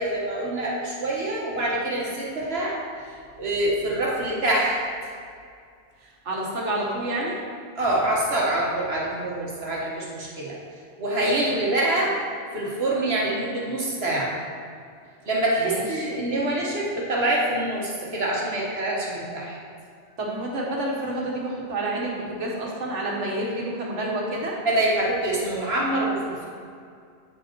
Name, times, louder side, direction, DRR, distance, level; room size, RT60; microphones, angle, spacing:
voice 1, 0.0-2.8 3.1-4.8 7.8-10.6 11.0-12.2 12.5-14.4 15.2-19.6 24.6-26.5, right 1 dB, 60° right, -4 dB, 1.4 m, -25 dB
voice 2, 6.0-7.4 15.6-16.1 20.2-24.6, right 1 dB, 90° right, -2 dB, 1.6 m, -29 dB
8.4 x 5.2 x 4.5 m, 2.2 s
omnidirectional pair, 1.2 m